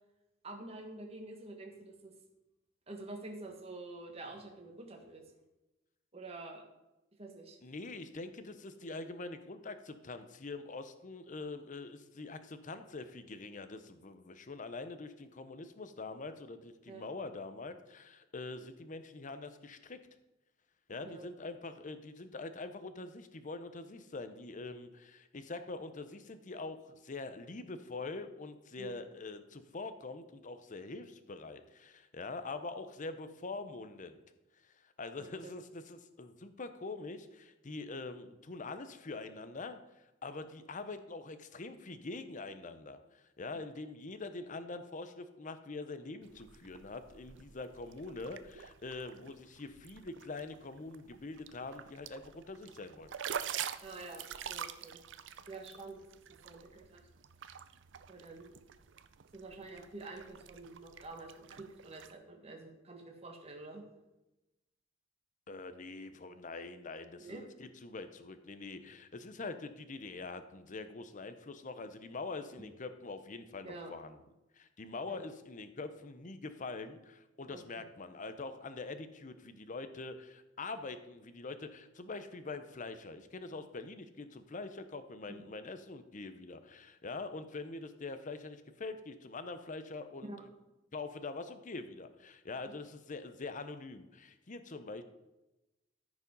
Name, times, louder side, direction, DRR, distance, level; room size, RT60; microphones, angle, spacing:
voice 1, 0.4-2.1 2.9-5.2 6.1-6.6 7.2-7.6 16.9-17.1 20.9-21.3 28.8-29.0 35.4-35.6 53.8-55.0 55.5-56.0 56.4-57.0 58.1-58.6 59.3-63.8 67.2-67.4 72.6-72.7 73.6-73.9 75.1-75.2 77.5-77.6 85.3-85.4 90.2-90.4, right 2 dB, 35° right, 1 dB, 1.6 m, -47 dB
voice 2, 7.6-20.0 20.9-34.2 34.6-53.1 65.5-74.2 74.6-90.5 90.9-95.0, left 3 dB, 40° left, 10 dB, 0.8 m, -44 dB
sound 1, 46.2-62.1, right 8 dB, 70° right, 0.5 m, -47 dB
14.0 x 5.0 x 5.3 m, 0.97 s
head